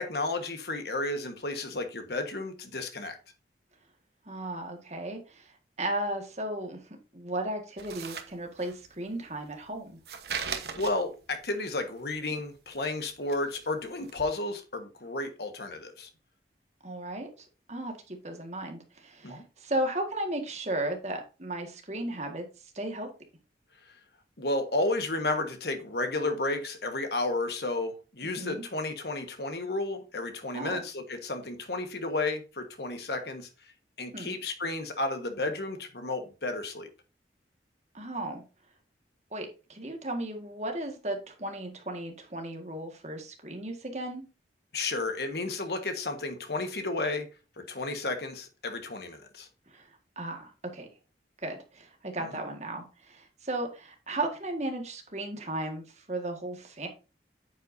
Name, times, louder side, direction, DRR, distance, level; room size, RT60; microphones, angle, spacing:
voice 1, 0.0-3.2 10.8-16.1 19.2-19.4 24.4-33.5 34.0-36.9 44.7-47.3 47.6-49.5, left 2 dB, 65° left, 1.4 m, -32 dB
voice 2, 4.3-5.5 5.8-6.8 7.1-10.0 16.8-22.5 22.7-23.1 28.4-28.6 30.5-30.8 34.1-34.4 37.9-38.4 39.3-44.2 49.7-49.9 50.2-50.9 51.4-56.9, right 1 dB, 40° right, 1.8 m, -35 dB
sound 1, 7.8-8.9 9.2-11.3 11.7-13.0 13.3-13.7 14.0-14.1, right 6 dB, 65° right, 1.1 m, -38 dB
9.1 x 7.7 x 2.7 m
head